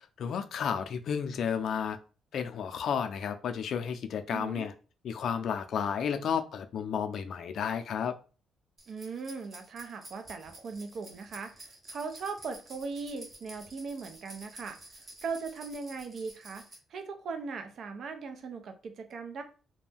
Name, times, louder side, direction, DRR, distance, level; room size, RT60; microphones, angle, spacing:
voice 1, 0.2-2.0 2.3-4.7 5.0-8.1, left 7 dB, 65° left, 8 dB, 0.4 m, -32 dB
voice 2, 4.3-4.7 8.9-16.6 16.9-19.4, right 4 dB, 60° right, 6 dB, 0.6 m, -39 dB
sound 1, 8.8-16.7, right 1 dB, 35° right, 1.2 m, -51 dB
2.5 x 2.2 x 3.3 m, 0.36 s
cardioid pair, 90°, 0 cm